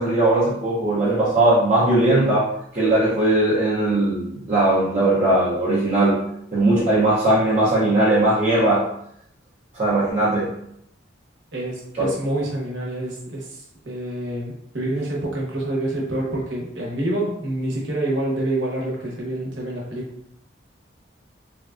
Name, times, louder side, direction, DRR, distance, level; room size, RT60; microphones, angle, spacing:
voice 1, 0.0-2.5 2.7-6.2 6.5-8.8 9.7-10.5 12.0-12.1, right 2 dB, 35° right, -9 dB, 0.7 m, -19 dB
voice 2, 11.5-20.1, right 1 dB, 65° right, -4 dB, 1.0 m, -27 dB
3.4 x 2.2 x 2.4 m, 0.73 s
head